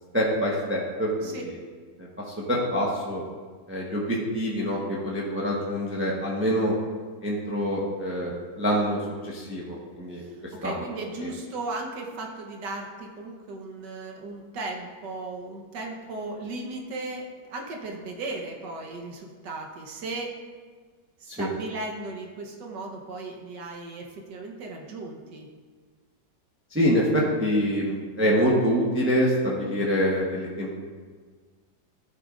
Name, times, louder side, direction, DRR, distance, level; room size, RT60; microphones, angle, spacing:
voice 1, 0.1-1.6 2.0-3.2 3.7-6.7 7.2-10.2 10.6-10.8 11.2-11.3 21.3-21.5 26.7-30.8, equal, 10° right, -4 dB, 1.0 m, -26 dB
voice 2, 10.2-20.3 21.2-25.5, right 2 dB, 75° right, 1 dB, 1.6 m, -36 dB
14.0 x 7.7 x 2.5 m, 1.5 s
omnidirectional pair, 1.9 m